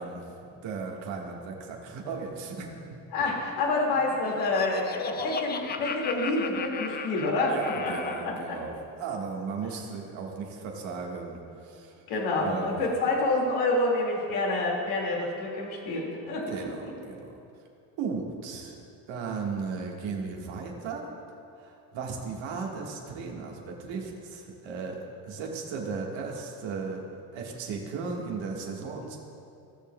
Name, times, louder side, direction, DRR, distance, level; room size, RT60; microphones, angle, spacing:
voice 1, 0.0-3.0 7.5-12.0 12.3-12.8 16.5-17.6 18.0-21.1 21.6-27.1 27.3-29.2, right 5 dB, 65° right, 0 dB, 1.6 m, -36 dB
voice 2, 3.1-7.9 8.2-8.6 12.1-16.4 16.8-16.9, left 2 dB, 70° left, -2 dB, 2.3 m, -28 dB
Laughter, 3.9-8.4, left 6 dB, 20° left, 0.4 m, -37 dB
17.5 x 6.7 x 2.3 m, 2.6 s
hypercardioid pair, 70°, 49 cm